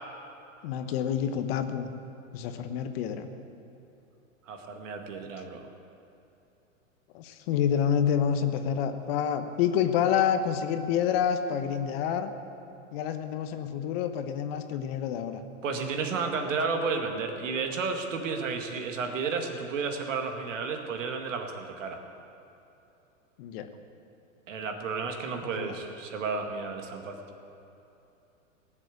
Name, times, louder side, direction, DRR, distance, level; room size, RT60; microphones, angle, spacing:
voice 1, 0.6-1.9 2.3-3.3 7.1-12.3 12.9-15.4 23.4-23.7 25.6-25.7, left 8 dB, 50° left, 8 dB, 1.2 m, -28 dB
voice 2, 4.5-5.6 15.6-22.0 24.5-27.2, right 4 dB, 70° right, 4 dB, 2.1 m, -32 dB
18.0 x 7.6 x 8.4 m, 2.8 s
hypercardioid pair, 120°, 40 cm